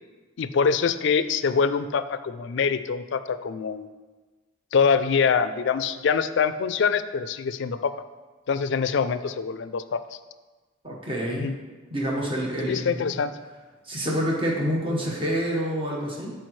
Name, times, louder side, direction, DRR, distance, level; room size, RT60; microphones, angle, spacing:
voice 1, 0.4-3.9 4.7-7.9 8.5-10.0 11.3-11.6 12.7-13.3, left 6 dB, 65° left, 13 dB, 0.4 m, -24 dB
voice 2, 10.8-11.5 11.9-13.0 13.8-16.3, equal, 25° right, -3 dB, 1.3 m, -27 dB
11.5 x 4.7 x 3.1 m, 1.3 s
head